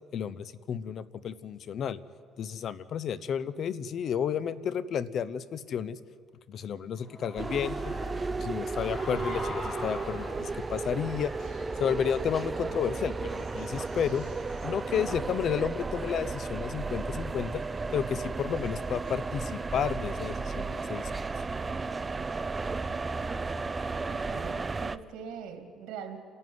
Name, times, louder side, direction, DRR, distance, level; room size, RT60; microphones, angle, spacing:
voice 1, 0.1-2.0 2.4-6.0 6.5-7.9 8.4-11.3 11.8-14.3 14.6-17.6 17.9-21.1, left 8 dB, 60° left, 17 dB, 0.8 m, -32 dB
Human voice / Cheering, 6.9-13.5, left 1 dB, 30° left, 7.7 m, -43 dB
sound 1, 7.4-25.0, right 3 dB, 25° right, 0.6 m, -34 dB
Crying sobbing, 11.4-12.3 12.7-12.8 13.2-14.7 15.4-15.5 15.8-16.2 16.7-17.1 17.6-18.0 18.4-19.1 19.6-19.9, left 4 dB, 85° left, 5.3 m, -61 dB
voice 2, 24.0-26.2, right 7 dB, 90° right, 5 dB, 2.5 m, -42 dB
29.5 x 11.0 x 9.6 m, 2.2 s
cardioid pair, 110°, 0 cm